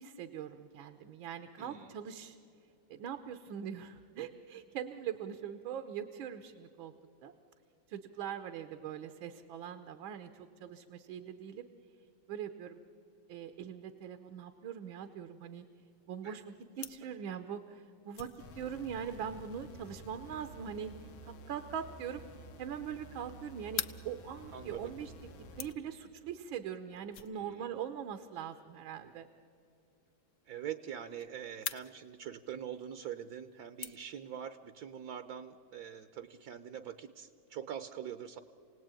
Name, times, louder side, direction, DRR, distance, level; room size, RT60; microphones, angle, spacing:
voice 1, 0.0-2.4 2.9-6.9 7.2-7.3 7.9-11.6 12.3-12.8 13.3-15.6 16.1-20.9 21.2-22.2 22.6-25.3 25.6-29.3, right 8 dB, 80° right, 8 dB, 1.7 m, -42 dB
voice 2, 1.6-2.0 16.2-16.4 24.5-24.9 27.3-27.7 30.5-38.4, right 9 dB, 60° right, 11 dB, 1.1 m, -44 dB
sound 1, 15.4-34.5, left 8 dB, 55° left, 0.9 m, -49 dB
sound 2, 18.4-25.7, right 1 dB, 85° left, 2.0 m, -51 dB
29.0 x 18.5 x 8.9 m, 2.9 s
omnidirectional pair, 2.1 m